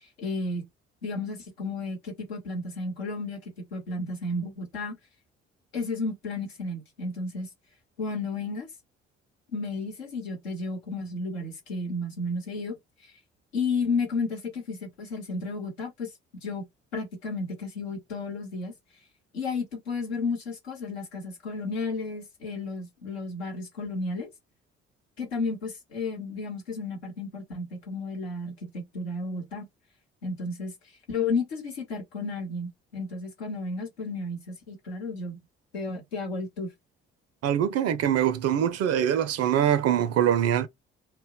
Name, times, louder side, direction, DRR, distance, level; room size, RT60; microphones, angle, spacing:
voice 1, 0.2-0.7 1.0-3.4 3.7-5.0 5.7-7.5 8.0-8.7 9.5-12.8 13.5-16.1 16.4-16.7 16.9-18.7 19.3-24.3 25.2-29.7 30.2-30.7 31.1-35.4 35.7-36.7, left 3 dB, 85° left, 1.0 m, -32 dB
voice 2, 37.4-40.7, right 10 dB, 55° right, 0.5 m, -23 dB
2.2 x 2.0 x 3.7 m
hypercardioid pair, 45°, 31 cm